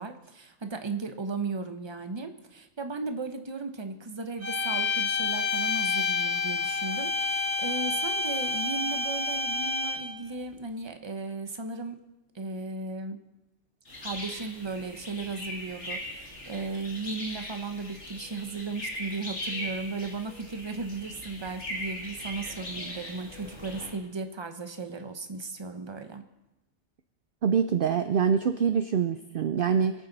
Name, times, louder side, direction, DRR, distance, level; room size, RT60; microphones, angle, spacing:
voice 1, 0.0-12.0 12.3-13.2 14.0-26.2, right 3 dB, 25° right, 7 dB, 0.9 m, -36 dB
sound 1, 4.4-10.2, left 4 dB, 80° right, 1.9 m, -29 dB
sound 2, 13.9-23.9, left 1 dB, 85° left, 2.7 m, -39 dB
voice 2, 27.4-29.9, right 7 dB, 60° right, 9 dB, 0.7 m, -25 dB
24.0 x 8.6 x 4.0 m, 1.0 s
omnidirectional pair, 1.2 m